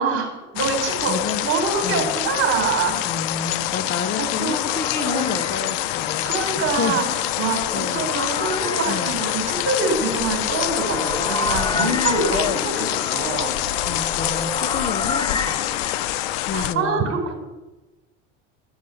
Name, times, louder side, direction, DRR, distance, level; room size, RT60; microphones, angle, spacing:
voice 1, 0.0-3.0 4.2-4.7 5.0-5.3 6.2-13.6 16.5-17.4, right 5 dB, 45° right, 4 dB, 4.4 m, -25 dB
sound 1, 0.6-16.7, left 15 dB, 75° left, 0.7 m, -25 dB
voice 2, 1.1-1.4 1.8-2.1 3.0-6.3 6.5-7.0 7.7-8.0 8.9-9.1 11.7-12.0 13.8-17.2, left 5 dB, 35° left, 9 dB, 1.2 m, -30 dB
sound 2, 3.3-16.5, left 3 dB, 15° left, 0.9 m, -32 dB
13.5 x 7.1 x 7.9 m, 1.0 s
supercardioid pair, 100°, 30 cm